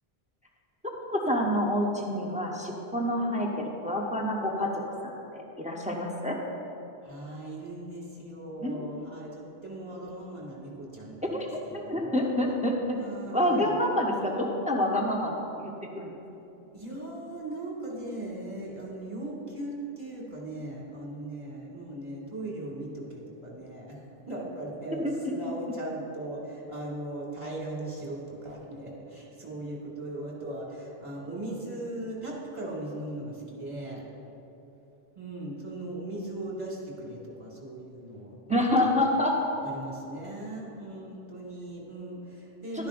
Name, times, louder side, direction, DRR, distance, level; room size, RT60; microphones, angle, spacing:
voice 1, 1.1-4.7 5.0-6.4 8.6-8.8 11.3-11.5 11.7-13.0 13.3-16.1 25.2-25.3 38.5-39.4, left 1 dB, 10° right, -1 dB, 0.8 m, -27 dB
voice 2, 7.0-12.2 12.9-14.7 16.7-24.0 24.3-34.0 35.2-38.6 39.1-39.2 39.6-42.9, right 1 dB, 30° right, -4 dB, 1.9 m, -39 dB
11.5 x 10.5 x 2.6 m, 2.9 s
omnidirectional pair, 1.1 m